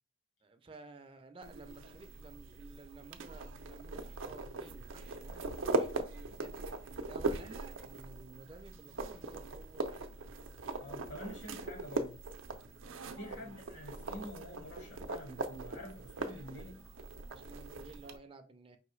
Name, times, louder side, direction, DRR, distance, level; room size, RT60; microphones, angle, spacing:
voice 1, 0.4-10.3 13.3-13.6 17.3-18.8, right 3 dB, 30° right, 0.4 m, -54 dB
sound 1, 1.4-18.2, right 3 dB, 90° right, 0.5 m, -40 dB
voice 2, 10.8-12.2 13.1-16.8, left 1 dB, 65° left, 1.5 m, -47 dB
4.6 x 3.0 x 3.1 m
head